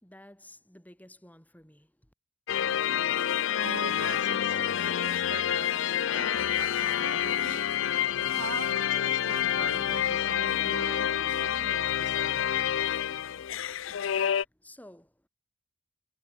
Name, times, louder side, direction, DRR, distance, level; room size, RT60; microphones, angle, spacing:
voice 1, 0.0-2.1 14.2-15.3, left 1 dB, 10° left, 5.1 m, -53 dB
sound 1, 2.5-14.4, left 10 dB, 70° left, 0.4 m, -28 dB
voice 2, 3.6-7.7 8.2-12.7, right 4 dB, 65° right, 2.7 m, -42 dB
head